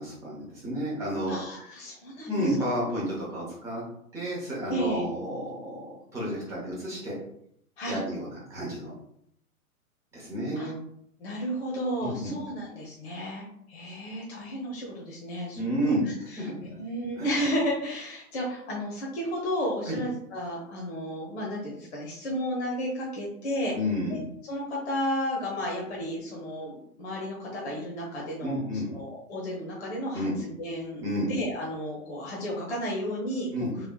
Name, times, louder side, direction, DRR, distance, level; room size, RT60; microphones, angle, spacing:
voice 1, 0.0-1.4 2.3-3.8 4.1-7.1 7.9-8.9 10.1-10.8 12.0-12.3 15.6-16.5 17.2-17.3 19.9-20.0 23.7-24.2 28.4-28.9 30.1-30.4 31.0-31.3 33.5-33.7, equal, 5° right, -7 dB, 0.9 m, -31 dB
voice 2, 1.3-2.5 4.7-5.0 7.8-8.0 10.5-10.7 11.2-23.7 24.1-28.6 28.9-33.9, equal, 45° left, -3 dB, 0.9 m, -33 dB
3.3 x 3.1 x 2.3 m, 0.71 s
figure-of-eight pair, 120°, 45 cm